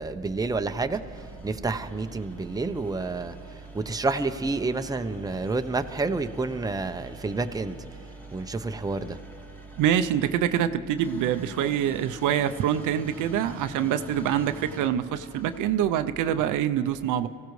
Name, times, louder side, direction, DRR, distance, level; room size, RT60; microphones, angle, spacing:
voice 1, 0.0-7.8 8.3-9.2, right 3 dB, 10° right, 8 dB, 0.6 m, -29 dB
sound 1, 0.9-15.9, left 1 dB, 5° left, 1.9 m, -46 dB
voice 2, 9.8-17.3, right 10 dB, 85° right, 10 dB, 0.6 m, -25 dB
24.0 x 15.5 x 3.1 m, 2.8 s
cardioid pair, 90°, 30 cm